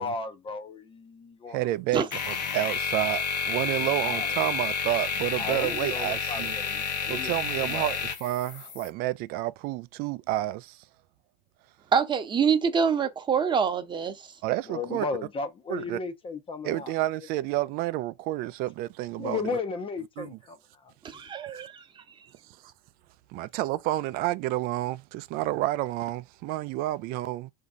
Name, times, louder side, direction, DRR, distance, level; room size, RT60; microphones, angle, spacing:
voice 1, 0.0-1.7 3.6-4.4 5.4-8.0 14.7-16.9 19.2-20.9, left 4 dB, 25° left, 0.6 m, -35 dB
voice 2, 1.5-6.6 7.1-10.8 14.4-15.1 15.7-16.0 16.6-19.4 20.2-20.4 23.3-27.5, right 16 dB, 45° right, 0.4 m, -30 dB
sound 1, 2.1-8.9, left 6 dB, 80° left, 0.9 m, -30 dB
voice 3, 11.9-14.2 21.0-21.8, right 6 dB, 20° right, 0.8 m, -25 dB
3.8 x 2.8 x 3.5 m
hypercardioid pair, 95°, 21 cm